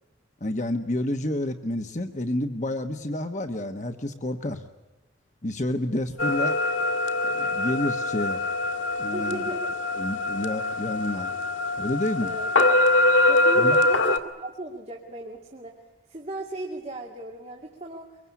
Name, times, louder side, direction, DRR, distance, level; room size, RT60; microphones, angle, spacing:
voice 1, 0.4-4.6 5.4-6.6 7.2-8.4 9.0-9.4 10.0-11.3 11.8-12.4 13.6-13.8, left 1 dB, 40° left, 7 dB, 1.2 m, -29 dB
sound 1, 6.2-14.2, left 2 dB, 85° left, 2.0 m, -23 dB
voice 2, 9.1-9.7 12.2-12.9 13.2-15.7 16.1-18.2, right 2 dB, 35° right, 0 dB, 2.4 m, -36 dB
24.5 x 23.0 x 8.4 m, 1.1 s
head